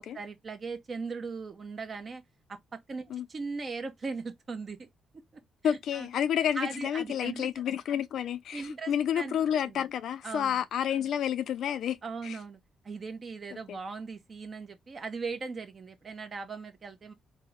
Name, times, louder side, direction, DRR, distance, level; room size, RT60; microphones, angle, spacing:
voice 1, 0.0-2.2 2.5-2.6 2.9-3.0 3.3-4.9 5.1-6.1 6.5-7.5 8.5-9.4 9.6-9.8 10.2-10.6 12.0-12.6 12.8-17.1, right 4 dB, 40° right, 0.7 m, -39 dB
voice 2, 5.6-12.0 12.2-12.4 13.7-13.8, left 9 dB, 75° left, 0.3 m, -30 dB
3.4 x 2.0 x 3.1 m
cardioid pair, 105°, 0 cm